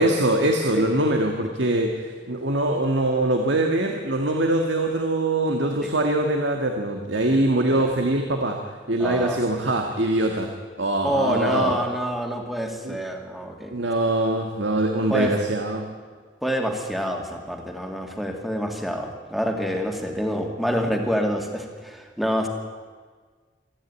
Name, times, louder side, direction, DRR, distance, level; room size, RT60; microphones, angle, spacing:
voice 1, 0.0-10.5 10.8-11.8 12.9-13.0 13.7-15.9, right 1 dB, 80° right, 3 dB, 1.8 m, -23 dB
voice 2, 7.3-7.9 9.0-9.4 11.0-13.7 15.1-15.4 16.4-22.5, equal, ahead, 2 dB, 2.5 m, -27 dB
27.0 x 10.5 x 9.8 m, 1.5 s
head